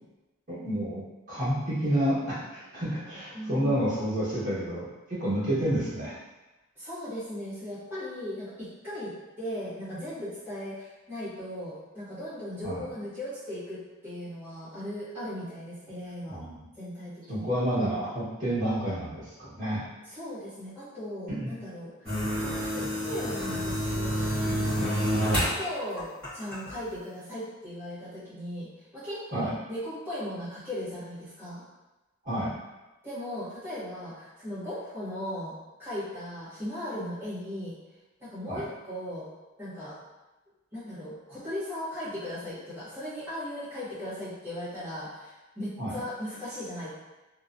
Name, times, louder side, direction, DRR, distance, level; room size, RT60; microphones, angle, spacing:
voice 1, 0.5-1.0 1.3-6.2 12.6-12.8 16.3-16.5 17.3-19.8 21.3-21.5 29.3-29.5 32.2-32.5 38.5-38.6 45.8-45.9, right 1 dB, 40° right, -11 dB, 1.4 m, -29 dB
voice 2, 3.3-3.8 6.7-16.4 16.8-17.5 20.0-22.1 22.7-24.9 25.4-31.6 33.0-37.8 38.2-39.3 39.6-40.0 40.7-46.9, left 1 dB, 10° right, -15 dB, 1.1 m, -37 dB
sound 1, 22.0-25.6 26.0-26.7, equal, 5° left, 1.4 m, -28 dB
2.8 x 2.2 x 2.5 m, 1.1 s
head